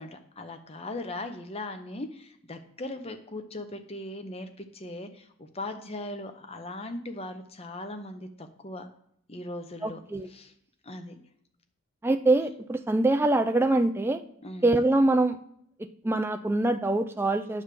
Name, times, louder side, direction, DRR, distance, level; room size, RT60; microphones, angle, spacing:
voice 1, 0.0-8.9 9.3-10.5 10.8-11.2 14.4-14.7, left 2 dB, 30° left, 7 dB, 0.8 m, -39 dB
voice 2, 9.8-10.3 12.0-14.2 14.6-15.4 15.8-17.6, right 2 dB, 10° right, 7 dB, 0.4 m, -24 dB
9.4 x 3.4 x 6.7 m, 0.68 s
head